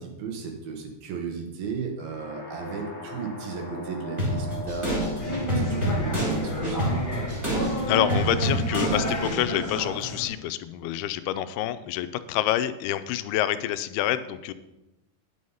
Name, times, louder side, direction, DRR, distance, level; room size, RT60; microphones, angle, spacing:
voice 1, 0.0-5.0 5.3-6.8, right 5 dB, 75° right, 2 dB, 2.9 m, -35 dB
sound 1, 2.0-9.9, left 3 dB, 45° left, 1.5 m, -41 dB
sound 2, 4.2-9.4, right 1 dB, 10° right, 1.7 m, -28 dB
sound 3, 5.2-10.3, equal, 15° left, 1.8 m, -31 dB
voice 2, 7.9-14.5, left 12 dB, 85° left, 12 dB, 2.4 m, -27 dB
9.5 x 6.4 x 5.5 m, 0.98 s
omnidirectional pair, 4.5 m